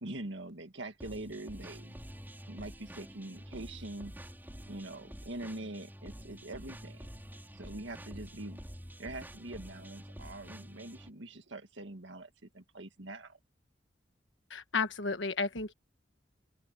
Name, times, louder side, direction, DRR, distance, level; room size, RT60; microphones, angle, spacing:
voice 1, 0.0-1.9 2.5-4.1 4.7-7.1 7.5-8.6 9.0-13.4, right 2 dB, 75° right, 1.9 m, -44 dB
sound 1, 1.0-11.1, equal, 10° right, 5.6 m, -48 dB
voice 2, 14.5-15.7, left 4 dB, 80° left, 1.3 m, -32 dB
open air
head